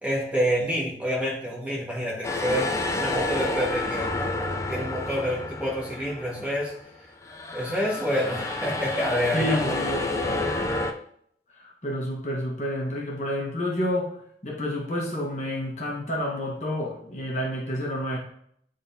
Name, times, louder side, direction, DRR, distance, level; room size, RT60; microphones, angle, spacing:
voice 1, 0.0-6.7 7.5-9.8, equal, 10° right, -5 dB, 1.6 m, -28 dB
sound 1, 2.2-6.8 7.2-10.9, left 2 dB, 15° left, 0.4 m, -30 dB
voice 2, 9.3-10.6 11.5-18.2, left 1 dB, 40° left, -3 dB, 1.3 m, -30 dB
9.8 x 3.8 x 2.8 m, 0.68 s
head